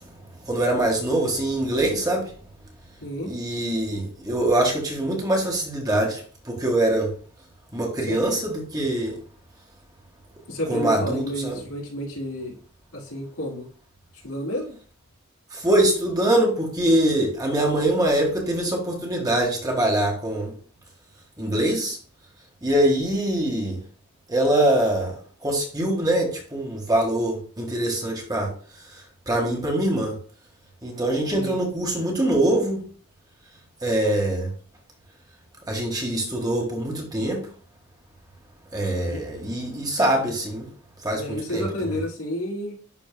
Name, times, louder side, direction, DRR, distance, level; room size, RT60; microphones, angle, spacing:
voice 1, 0.5-2.3 3.3-7.1 7.7-9.1 10.7-11.6 15.5-20.5 21.4-22.0 22.6-23.8 24.3-25.1 25.4-28.5 29.3-30.2 30.8-32.8 33.8-34.5 35.7-37.4 38.7-40.7 41.0-41.6, right 1 dB, 20° right, 1.7 m, -23 dB
voice 2, 3.0-3.3 8.1-8.2 10.5-12.6 12.9-13.7 14.2-14.8 31.3-31.6 39.0-39.2 41.1-42.8, equal, 85° left, 3.6 m, -30 dB
11.0 x 4.2 x 2.2 m
head